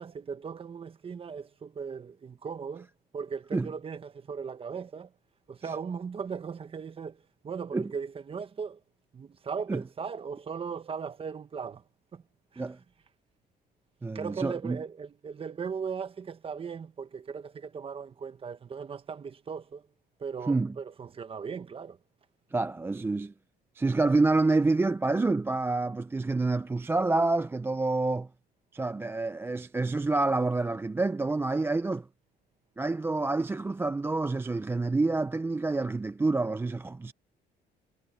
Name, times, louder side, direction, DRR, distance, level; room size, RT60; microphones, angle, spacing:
voice 1, 0.0-2.9 3.1-5.1 5.5-8.8 9.1-11.8 12.1-12.2 12.5-12.6 14.1-19.8 20.2-22.0, right 6 dB, 35° right, 1.5 m, -38 dB
voice 2, 14.0-14.8 20.5-20.8 22.5-23.3 23.8-28.3 28.7-32.1 32.8-37.1, right 3 dB, 15° right, 0.5 m, -28 dB
cardioid pair, 110°, 17 cm